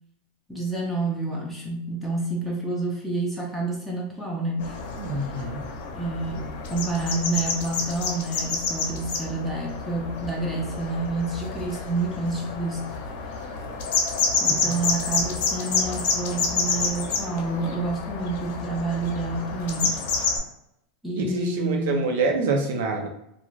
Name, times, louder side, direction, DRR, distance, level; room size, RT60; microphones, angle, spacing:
voice 1, 0.5-4.8 5.9-12.9 14.4-20.0 21.0-22.0, right 2 dB, 5° right, -2 dB, 0.4 m, -29 dB
sound 1, 4.6-20.4, left 4 dB, 60° left, 0.6 m, -29 dB
voice 2, 5.0-5.7 14.4-14.8 21.2-23.1, right 3 dB, 75° right, 2 dB, 0.6 m, -26 dB
2.4 x 2.4 x 3.1 m, 0.78 s
supercardioid pair, 165°, 0 cm